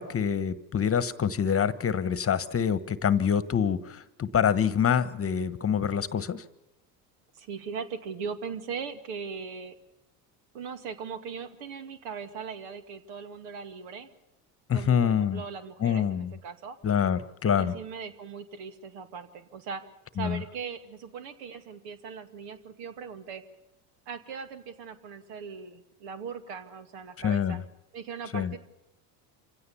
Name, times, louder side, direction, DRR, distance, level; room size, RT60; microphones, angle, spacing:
voice 1, 0.0-6.4 14.7-15.4 15.8-16.3 16.8-17.7 20.2-20.4 27.2-27.6 28.3-28.5, left 8 dB, 30° left, 15 dB, 1.2 m, -26 dB
voice 2, 7.3-9.8 10.5-14.1 14.7-16.8 17.6-19.8 20.1-23.4 24.1-27.6 27.9-28.6, right 6 dB, 75° right, 9 dB, 2.4 m, -39 dB
26.5 x 16.5 x 7.1 m, 0.93 s
hypercardioid pair, 75°, 47 cm